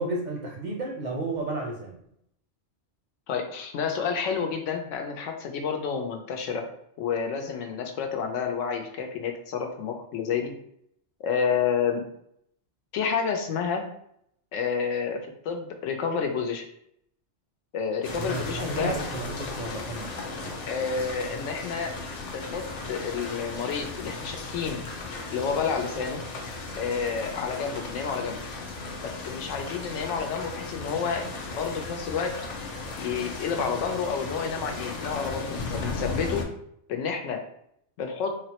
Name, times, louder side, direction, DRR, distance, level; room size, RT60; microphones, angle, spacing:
voice 1, 0.0-2.0 18.2-20.6, right 2 dB, 55° right, 0 dB, 0.5 m, -33 dB
voice 2, 3.3-6.7 7.0-10.5 11.2-12.0 12.9-13.8 14.5-16.7 17.7-19.0 20.7-21.9 22.3-24.9 25.3-26.2 26.8-28.4 29.0-31.2 31.5-32.3 33.0-36.4 36.9-37.4 38.0-38.3, left 6 dB, 90° left, 5 dB, 0.9 m, -29 dB
sound 1, 18.0-36.4, left 3 dB, 60° left, 0.4 m, -36 dB
3.8 x 2.0 x 2.8 m, 0.73 s
omnidirectional pair, 1.2 m